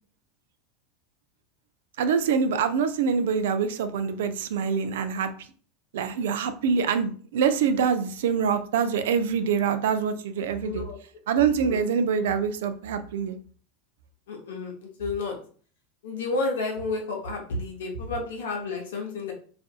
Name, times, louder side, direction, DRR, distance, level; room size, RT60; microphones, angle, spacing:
voice 1, 2.0-5.3 5.9-10.8 11.3-13.4, right 6 dB, 75° right, 10 dB, 0.3 m, -25 dB
voice 2, 10.6-11.0 11.6-11.8 14.3-15.4 16.0-19.3, left 3 dB, 75° left, 2 dB, 0.7 m, -31 dB
2.5 x 2.5 x 2.3 m, 0.44 s
hypercardioid pair, 95°, 0 cm